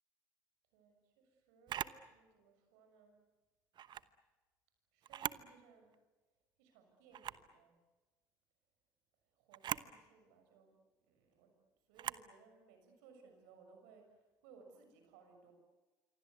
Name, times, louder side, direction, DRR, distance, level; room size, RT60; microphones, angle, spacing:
voice 1, 0.7-3.2 4.9-5.9 6.6-7.7 9.3-10.8 11.0-11.5 11.9-15.5, right 5 dB, 80° right, 5 dB, 6.4 m, -63 dB
Camera, 1.7-2.0 3.7-4.1 5.0-5.5 5.9-6.0 7.1-7.5 9.5-9.9 11.9-12.3, right 10 dB, 55° right, 1.0 m, -41 dB
27.0 x 24.5 x 8.1 m, 1.2 s
hypercardioid pair, 60°, 9 cm